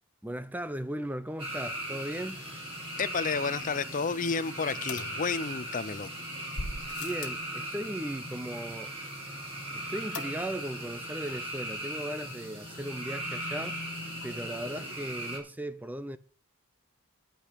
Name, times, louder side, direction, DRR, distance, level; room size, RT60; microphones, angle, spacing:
voice 1, 0.2-2.4 7.0-8.9 9.7-13.8 14.2-16.2, right 1 dB, 10° right, 0.5 m, -37 dB
sound 1, 1.4-15.4, right 1 dB, 25° right, 5.7 m, -38 dB
voice 2, 3.0-6.1, left 5 dB, 35° left, 0.6 m, -31 dB
sound 2, 3.3-7.4, right 4 dB, 65° right, 2.8 m, -56 dB
sound 3, 4.9-5.9 6.5-7.5 10.1-10.7 11.0-11.1 11.4-11.5, left 3 dB, 75° left, 1.5 m, -40 dB
10.0 x 8.8 x 8.2 m
head